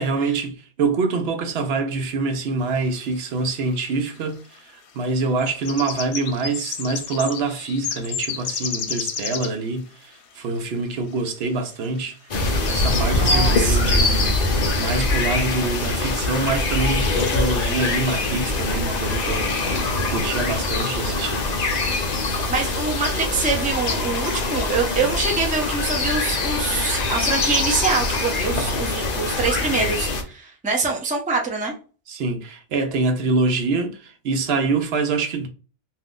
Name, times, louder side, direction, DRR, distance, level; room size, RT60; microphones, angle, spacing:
voice 1, 0.0-14.3 14.8-19.7 20.1-21.5 28.5-28.7 32.1-35.5, right 3 dB, 70° right, 0.8 m, -25 dB
sound 1, 3.2-3.3 3.5-4.2 5.0-9.7 10.6-10.7 11.2-11.3 11.7-12.0 12.4-12.5 12.8-13.0, left 7 dB, 80° left, 0.8 m, -31 dB
sound 2, 12.3-30.2, left 2 dB, 45° left, 0.6 m, -23 dB
voice 2, 13.1-13.9 22.5-31.7, right 4 dB, 10° right, 0.5 m, -25 dB
2.4 x 2.4 x 3.5 m
omnidirectional pair, 1.1 m